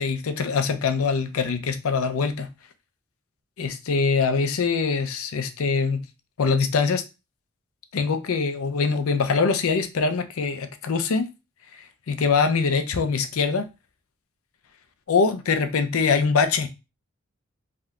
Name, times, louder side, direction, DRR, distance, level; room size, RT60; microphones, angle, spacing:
voice 1, 0.0-2.5 3.6-6.1 6.4-7.0 7.9-11.3 11.8-13.7 15.1-16.7, left 5 dB, 90° left, 0.5 m, -23 dB
3.6 x 2.6 x 2.3 m
head